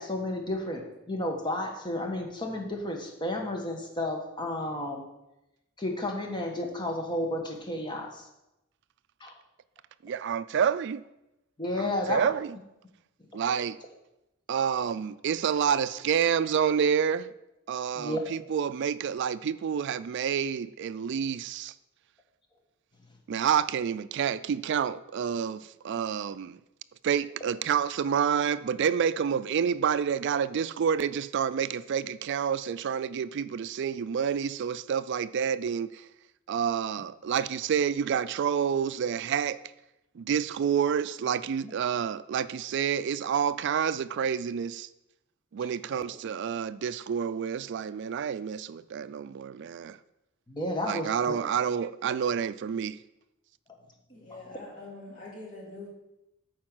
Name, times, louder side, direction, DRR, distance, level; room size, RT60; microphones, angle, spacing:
voice 1, 0.0-5.0 5.8-8.2 9.2-9.3 11.6-12.2 13.5-13.6 18.0-18.2 41.6-41.7 50.5-51.4, left 1 dB, 20° left, 1.2 m, -32 dB
voice 2, 10.0-11.0 11.8-12.6 13.3-13.8 14.5-17.3 17.7-21.7 23.3-26.6 27.0-36.1 36.5-39.6 40.2-44.9 45.5-50.0 50.9-53.0, right 7 dB, 55° right, 0.3 m, -28 dB
voice 3, 54.1-55.9, left 2 dB, 40° left, 2.7 m, -44 dB
8.6 x 4.7 x 6.1 m
head